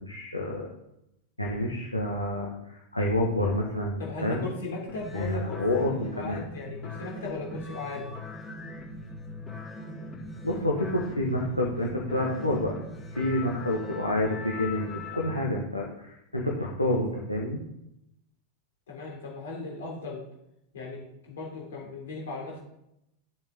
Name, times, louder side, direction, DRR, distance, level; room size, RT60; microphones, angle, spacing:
voice 1, 0.0-0.7 1.4-4.5 5.1-6.4 10.4-12.8 13.2-17.6, left 1 dB, 85° left, -2 dB, 1.7 m, -28 dB
voice 2, 4.0-8.1 18.9-20.2 20.7-22.6, left 3 dB, 60° left, -2 dB, 3.2 m, -37 dB
sound 1, 4.9-15.4, left 2 dB, 20° left, 3.6 m, -41 dB
13.0 x 7.3 x 3.9 m, 0.83 s
figure-of-eight pair, 90°, 0 cm